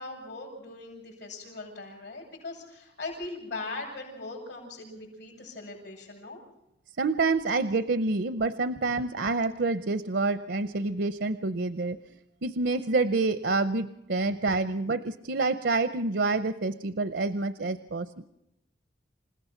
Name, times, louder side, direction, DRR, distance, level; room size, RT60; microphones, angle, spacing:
voice 1, 0.0-6.4, left 3 dB, 75° left, -6 dB, 7.2 m, -40 dB
voice 2, 7.0-12.0 12.4-18.3, right 3 dB, 75° right, 12 dB, 0.7 m, -27 dB
28.5 x 16.5 x 5.8 m, 0.85 s
head